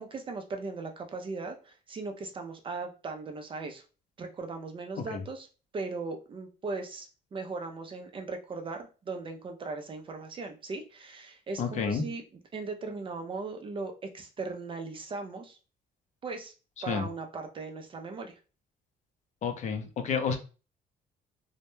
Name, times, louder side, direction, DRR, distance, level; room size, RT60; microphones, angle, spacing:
voice 1, 0.0-3.8 4.2-5.5 5.7-12.2 12.5-15.6 16.2-16.5 16.8-18.4, right 3 dB, 30° right, 4 dB, 0.4 m, -38 dB
voice 2, 11.6-12.0 16.9-17.1 19.4-20.4, left 6 dB, 45° left, 6 dB, 0.5 m, -30 dB
2.1 x 2.1 x 3.0 m, 0.34 s
cardioid pair, 110°, 17 cm